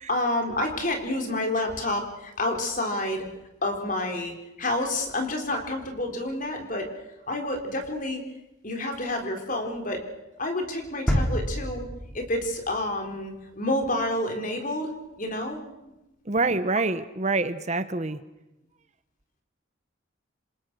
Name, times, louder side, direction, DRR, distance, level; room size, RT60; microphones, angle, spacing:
voice 1, 0.1-3.2 3.6-6.9 7.3-8.3 8.6-10.0 10.4-11.9 12.1-14.9 15.2-15.9, left 1 dB, 40° left, 4 dB, 4.2 m, -29 dB
sound 1, 11.1-13.0 13.4-13.5, equal, 5° left, 2.5 m, -28 dB
voice 2, 16.3-18.2, right 3 dB, 35° right, 12 dB, 1.0 m, -26 dB
27.5 x 25.5 x 6.3 m, 0.94 s
head